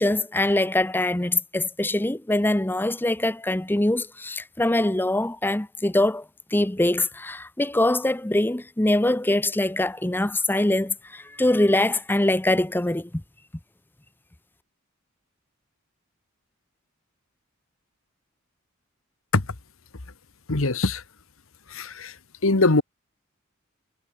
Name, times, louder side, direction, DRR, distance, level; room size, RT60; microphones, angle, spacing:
voice 1, 0.0-6.2 6.5-13.1, left 1 dB, 10° left, 0.7 m, -23 dB
voice 2, 20.5-21.0 21.7-22.1 22.4-22.8, left 2 dB, 80° left, 1.6 m, -21 dB
head